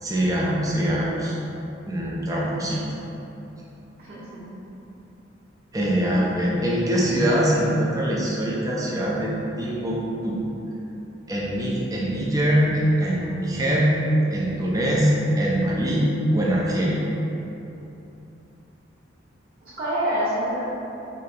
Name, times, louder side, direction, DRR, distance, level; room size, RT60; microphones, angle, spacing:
voice 1, 0.0-1.3 1.9-2.8 5.7-10.0 10.2-10.4 11.3-14.0 14.3-17.0, equal, 20° right, -5 dB, 0.6 m, -23 dB
voice 2, 4.0-4.4 19.6-20.6, equal, 40° right, -16 dB, 1.3 m, -27 dB
5.1 x 3.2 x 2.8 m, 3.0 s
head